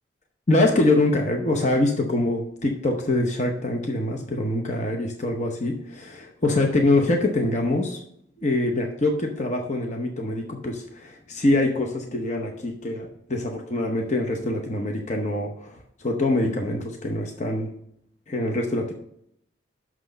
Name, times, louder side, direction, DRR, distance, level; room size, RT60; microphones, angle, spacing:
voice 1, 0.5-8.0 8.4-17.7 18.3-18.9, left 2 dB, 35° left, 2 dB, 0.8 m, -24 dB
6.2 x 6.1 x 6.7 m, 0.73 s
head